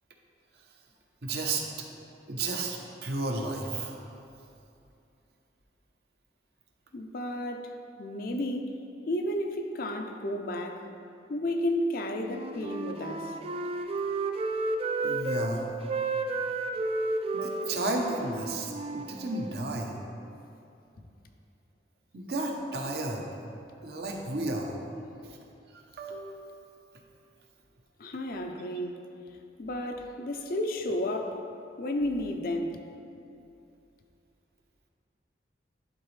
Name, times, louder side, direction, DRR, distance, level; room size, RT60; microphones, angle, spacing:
voice 1, 1.2-1.6 2.3-4.1 15.0-15.7 17.2-20.0 22.1-23.3 23.8-24.8 25.2-25.4 26.0-26.4, right 2 dB, 60° right, 1 dB, 0.8 m, -33 dB
voice 2, 6.9-8.8 9.1-10.9 11.3-13.4 28.0-29.0 29.6-31.4 31.8-32.8, left 1 dB, 55° left, 4 dB, 0.5 m, -32 dB
Wind instrument woodwind instrument, 12.2-15.5 15.8-19.6, right 3 dB, 35° right, 0.3 m, -32 dB
11.0 x 4.0 x 3.2 m, 2.6 s
head